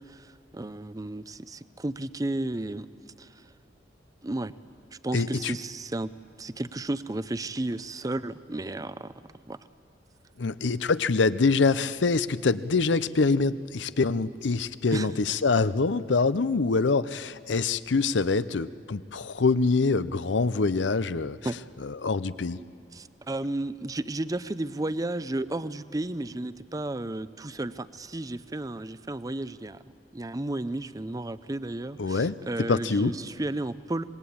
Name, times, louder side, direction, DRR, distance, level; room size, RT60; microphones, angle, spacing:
voice 1, 0.0-2.9 3.2-3.3 4.2-4.5 5.0-6.1 6.4-9.1 9.5-9.6 14.9-15.1 21.4-21.6 22.9-29.8 30.1-34.0, right 2 dB, 20° right, 15 dB, 0.5 m, -33 dB
voice 2, 5.1-5.6 10.4-21.4 21.8-22.6 32.0-32.4 32.7-33.2, left 4 dB, 80° left, 15 dB, 0.7 m, -25 dB
26.0 x 21.0 x 8.6 m, 2.5 s
head